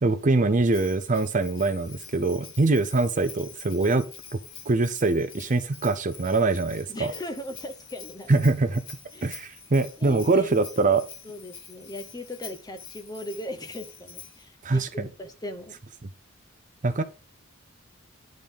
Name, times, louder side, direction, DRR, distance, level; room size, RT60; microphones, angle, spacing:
voice 1, 0.0-4.1 4.3-4.4 4.7-7.1 8.3-8.8 9.2-11.1 14.6-15.1 16.8-17.0, right 3 dB, 40° right, 0.6 m, -23 dB
Bell, 0.7-14.5, left 6 dB, 70° left, 2.0 m, -46 dB
voice 2, 6.9-8.5 9.1-9.4 10.0-10.5 11.2-15.8, left 1 dB, 20° left, 0.9 m, -38 dB
10.5 x 3.9 x 5.3 m
head